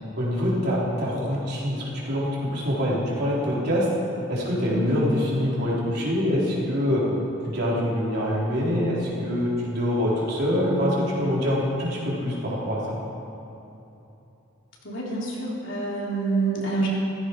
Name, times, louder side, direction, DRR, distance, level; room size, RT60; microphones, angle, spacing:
voice 1, 0.1-3.9 4.3-7.0 7.4-13.0, equal, 50° right, -6 dB, 4.2 m, -25 dB
voice 2, 14.8-16.9, right 3 dB, 65° left, -5 dB, 3.8 m, -27 dB
16.5 x 15.0 x 4.8 m, 3.0 s
head